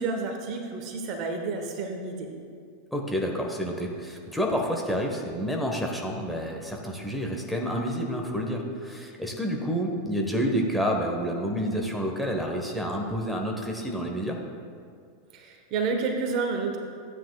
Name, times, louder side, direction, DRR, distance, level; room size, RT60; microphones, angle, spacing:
voice 1, 0.0-2.3 15.3-16.8, right 4 dB, 45° right, 3 dB, 1.2 m, -30 dB
voice 2, 2.9-14.4, equal, ahead, 0 dB, 1.3 m, -29 dB
13.5 x 9.1 x 2.4 m, 2.2 s
figure-of-eight pair, 90°, 0 cm